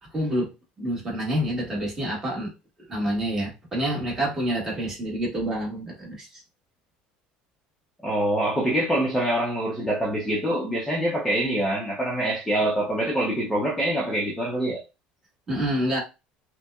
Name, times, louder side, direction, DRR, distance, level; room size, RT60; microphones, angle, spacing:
voice 1, 0.0-0.5 0.8-2.5 2.9-6.4 15.5-16.0, equal, 15° right, 1.5 m, -27 dB
voice 2, 8.0-14.8, right 1 dB, 5° left, 0.8 m, -25 dB
5.6 x 2.2 x 2.4 m
cardioid pair, 160°, 3 cm